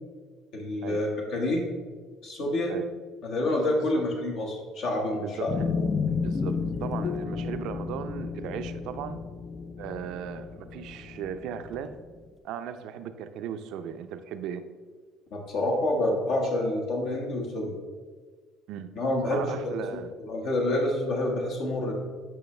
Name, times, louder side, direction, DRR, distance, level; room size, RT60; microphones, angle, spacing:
voice 1, 0.5-1.7 2.2-2.7 3.2-5.5 15.3-17.7 19.0-19.6 20.2-21.9, left 1 dB, 70° left, 0 dB, 1.4 m, -28 dB
voice 2, 5.2-5.7 6.1-9.2 9.8-11.9 12.4-14.6 18.7-18.9 19.3-20.1, right 8 dB, 70° right, 9 dB, 0.5 m, -37 dB
sound 1, 5.5-12.0, left 5 dB, 35° left, 0.4 m, -32 dB
9.3 x 5.2 x 3.2 m, 1.5 s
cardioid pair, 100°, 0 cm